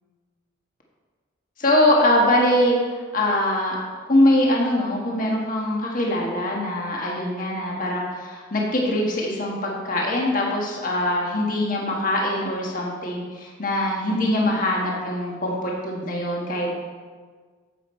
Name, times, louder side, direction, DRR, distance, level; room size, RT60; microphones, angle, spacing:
voice 1, 1.6-2.8 3.1-3.8 4.1-16.7, left 1 dB, 45° left, -2 dB, 1.5 m, -22 dB
10.0 x 8.0 x 4.3 m, 1.5 s
head